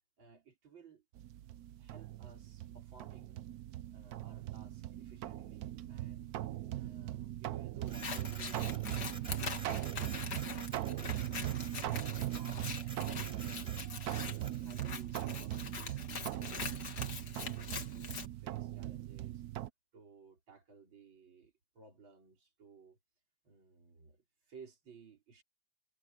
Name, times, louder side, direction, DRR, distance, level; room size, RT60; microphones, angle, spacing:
voice 1, 0.2-1.0 1.8-3.4 3.9-6.4 6.7-8.9 9.2-9.9 10.4-11.6 12.2-13.8 14.6-19.4 19.9-23.0 23.4-25.4, right 5 dB, 85° right, 4.8 m, -58 dB
sound 1, 1.2-19.7, right 14 dB, 65° right, 1.0 m, -40 dB
Scissors, 7.9-18.3, left 6 dB, 60° left, 2.2 m, -44 dB
Printer, 7.9-14.6, right 1 dB, 15° right, 7.7 m, -52 dB
omnidirectional pair, 2.1 m